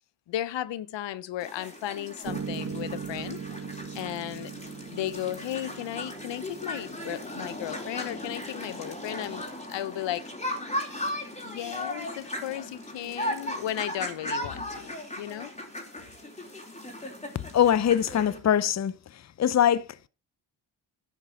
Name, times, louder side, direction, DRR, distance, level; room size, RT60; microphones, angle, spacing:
voice 1, 0.3-3.4 3.9-4.5 4.9-10.3 11.4-15.5, left 12 dB, 70° left, 0.8 m, -35 dB
sound 1, 1.4-18.4, left 1 dB, 15° left, 4.2 m, -37 dB
Piano, 2.2-10.3, right 6 dB, 30° right, 1.7 m, -40 dB
voice 2, 17.5-19.0 19.4-19.9, left 10 dB, 35° left, 0.7 m, -22 dB
11.5 x 5.5 x 7.6 m
cardioid pair, 65°, 45 cm